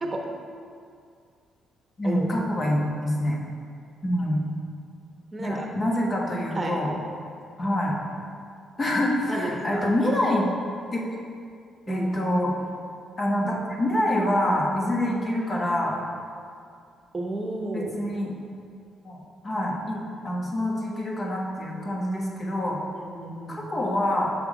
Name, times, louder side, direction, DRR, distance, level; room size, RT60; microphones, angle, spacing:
voice 1, 2.0-3.4 4.0-4.4 5.4-6.9 7.6-7.9 8.8-10.5 10.9-11.0 11.9-12.5 13.2-16.0 17.7-18.3 19.0-19.2 19.4-22.8 23.5-24.3, left 1 dB, 35° left, -2 dB, 1.2 m, -26 dB
voice 2, 5.3-5.7 6.5-6.8 9.3-9.9 11.9-12.2 17.1-17.9 23.0-23.7, right 2 dB, 25° right, 0 dB, 1.0 m, -32 dB
6.7 x 3.5 x 4.9 m, 2.3 s
cardioid pair, 90°, 0 cm